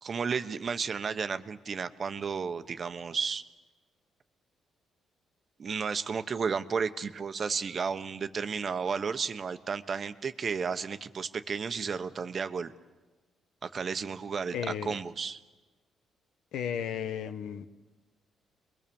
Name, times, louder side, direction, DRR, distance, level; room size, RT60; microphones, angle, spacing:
voice 1, 0.0-3.4 5.6-12.7 13.6-15.4, right 5 dB, 45° right, 1.1 m, -33 dB
voice 2, 14.5-15.0 16.5-17.7, left 8 dB, 80° left, 1.2 m, -34 dB
29.5 x 22.0 x 7.2 m
cardioid pair, 90°, 0 cm